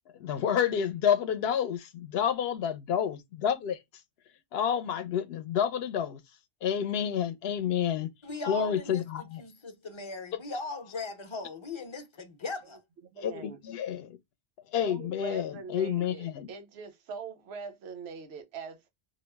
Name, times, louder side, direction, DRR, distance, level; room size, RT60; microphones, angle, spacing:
voice 1, 0.1-3.8 4.5-6.2 6.6-8.1 8.5-9.4 13.2-14.2 14.7-16.5, left 8 dB, 75° left, 0.8 m, -29 dB
voice 2, 8.2-12.8, left 3 dB, 35° left, 0.5 m, -39 dB
voice 3, 13.1-13.6 14.8-18.9, right 5 dB, 85° right, 0.9 m, -42 dB
2.3 x 2.0 x 3.2 m
omnidirectional pair, 1.0 m